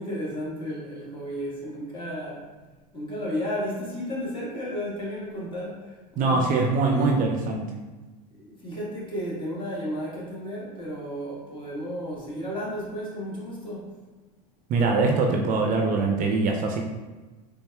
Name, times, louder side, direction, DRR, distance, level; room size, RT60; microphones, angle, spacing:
voice 1, 0.0-2.4 2.9-6.5 6.9-7.1 8.4-13.9, equal, 25° left, -5 dB, 1.4 m, -33 dB
voice 2, 6.2-7.7 14.7-16.8, right 3 dB, 45° right, 2 dB, 0.5 m, -23 dB
4.0 x 3.5 x 2.3 m, 1.2 s
hypercardioid pair, 100°, 20 cm